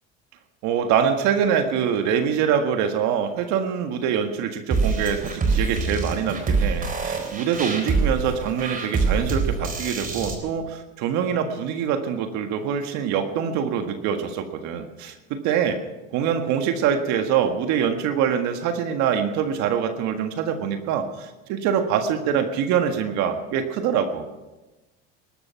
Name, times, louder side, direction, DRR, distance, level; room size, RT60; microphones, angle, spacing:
voice 1, 0.6-15.8 16.1-24.3, right 8 dB, 60° right, 6 dB, 1.7 m, -24 dB
sound 1, 4.7-10.3, right 4 dB, 25° right, 3.9 m, -25 dB
20.5 x 12.0 x 5.8 m, 1.1 s
supercardioid pair, 110°, 31 cm